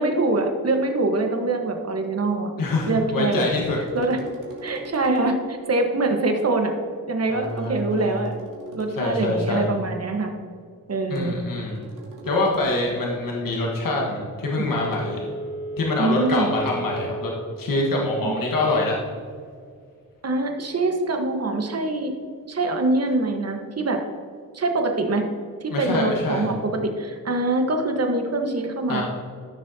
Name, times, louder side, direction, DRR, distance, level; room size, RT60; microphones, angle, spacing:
voice 1, 0.0-2.5 2.9-3.5 3.9-4.2 4.6-6.7 7.0-8.3 8.7-10.3 10.9-11.4 14.6-14.7 16.0-16.5 18.2-18.3 20.2-22.1 22.5-24.0 24.5-25.2 25.6-29.0, right 2 dB, 45° right, 4 dB, 1.4 m, -24 dB
voice 2, 2.6-3.8 7.3-8.1 9.0-9.7 11.1-11.8 12.2-15.3 15.8-19.0 25.7-26.5 28.9-29.0, left 2 dB, 65° left, -2 dB, 1.6 m, -25 dB
sound 1, 2.9-5.5 7.4-9.2 11.2-13.0 14.7-15.0, left 1 dB, 60° right, 2.1 m, -41 dB
Telephone, 14.4-17.5 17.9-18.0, right 1 dB, 35° left, 1.7 m, -34 dB
14.0 x 6.2 x 2.8 m, 2.1 s
cardioid pair, 80°, 36 cm